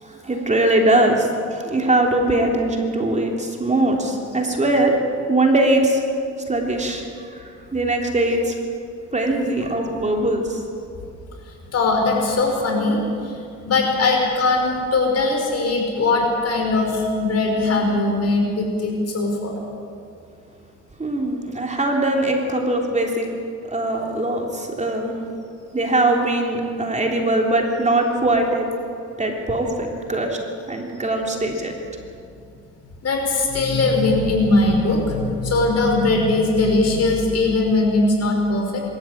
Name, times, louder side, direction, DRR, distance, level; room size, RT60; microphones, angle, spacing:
voice 1, 0.0-4.9 5.3-6.0 6.5-7.4 7.7-8.5 9.1-10.6 21.0-23.3 23.7-25.1 25.7-28.7 29.2-30.4 30.7-31.7, right 2 dB, 25° right, 1 dB, 3.3 m, -21 dB
voice 2, 11.7-19.5 33.0-38.8, left 2 dB, 55° left, 1 dB, 5.6 m, -20 dB
24.0 x 13.5 x 8.7 m, 2.5 s
cardioid pair, 90°, 30 cm